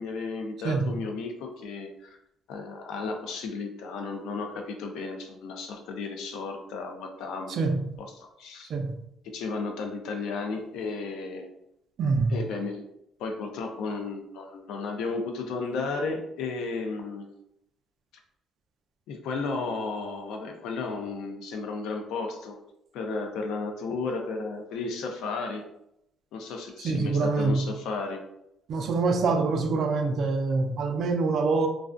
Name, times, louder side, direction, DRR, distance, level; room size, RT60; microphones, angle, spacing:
voice 1, 0.0-2.2 2.5-7.7 8.0-8.7 9.2-11.5 12.3-12.9 13.2-17.3 19.1-22.6 22.9-25.6 26.3-28.2, left 4 dB, 75° left, 3 dB, 0.4 m, -34 dB
voice 2, 7.5-7.8 8.7-8.9 12.0-12.4 26.8-27.7 28.7-31.7, right 4 dB, 50° right, 6 dB, 0.3 m, -25 dB
2.3 x 2.2 x 2.4 m, 0.79 s
cardioid pair, 155°, 0 cm